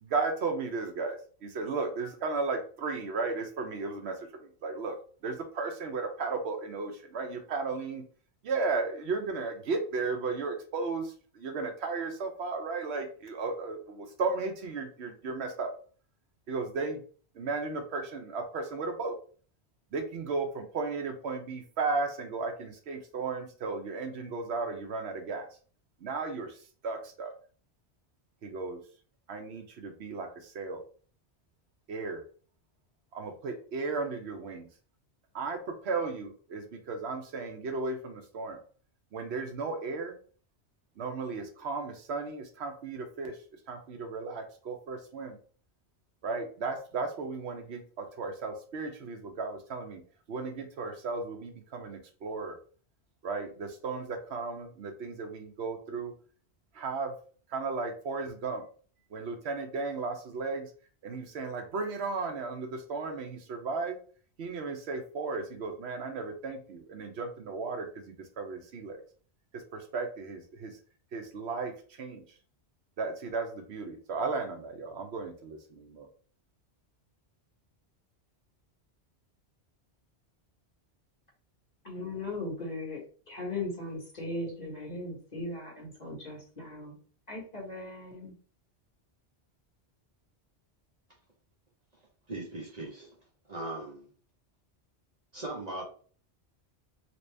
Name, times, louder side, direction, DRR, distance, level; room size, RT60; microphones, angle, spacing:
voice 1, 0.0-4.1 4.4-4.9 5.2-8.0 8.4-15.7 16.5-17.0 17.3-19.2 19.9-25.5 26.0-27.3 28.4-28.8 29.3-30.8 31.9-32.2 33.1-34.7 35.3-35.6 35.8-38.6 39.1-40.1 41.0-43.4 43.7-45.4 46.2-50.0 50.3-52.6 53.2-56.1 56.7-57.1 57.5-58.6 59.1-60.7 61.0-64.0 64.4-69.0 69.7-70.8 71.1-71.7 72.0-72.2 73.0-76.1, right 4 dB, 75° right, 5 dB, 0.9 m, -35 dB
voice 2, 81.8-83.0 83.3-87.0 87.3-88.3, left 2 dB, 40° left, -3 dB, 1.4 m, -38 dB
voice 3, 92.3-93.1 93.5-94.1 95.3-95.8, right 2 dB, 40° right, -2 dB, 0.9 m, -38 dB
3.0 x 2.8 x 3.2 m, 0.42 s
omnidirectional pair, 1.1 m